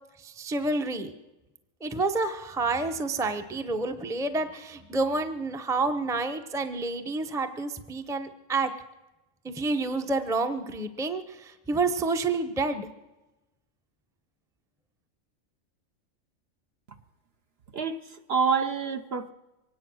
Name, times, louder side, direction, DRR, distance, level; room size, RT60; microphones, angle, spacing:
voice 1, 0.2-1.1 1.8-8.7 9.4-12.9, right 3 dB, 5° right, 7 dB, 0.6 m, -29 dB
voice 2, 17.7-19.3, right 6 dB, 55° right, 7 dB, 0.9 m, -27 dB
24.0 x 9.6 x 6.2 m, 1.0 s
omnidirectional pair, 1.4 m